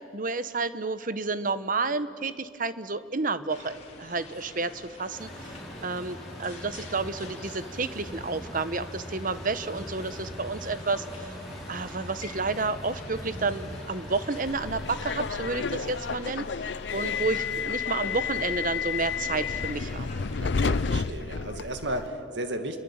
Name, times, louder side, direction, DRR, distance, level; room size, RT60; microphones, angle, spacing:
voice 1, 0.1-5.3 5.8-11.3 11.7-16.4 16.9-20.2, right 3 dB, 45° right, 13 dB, 1.0 m, -30 dB
sound 1, 3.5-21.0, left 2 dB, 35° left, 3.7 m, -46 dB
Truck, 5.1-16.2, equal, ahead, 5.5 m, -41 dB
Subway metro underground, 14.5-22.1, left 5 dB, 65° left, 0.6 m, -31 dB
voice 2, 20.4-22.8, right 1 dB, 70° right, 6 dB, 2.3 m, -34 dB
29.0 x 22.5 x 8.9 m, 2.4 s
head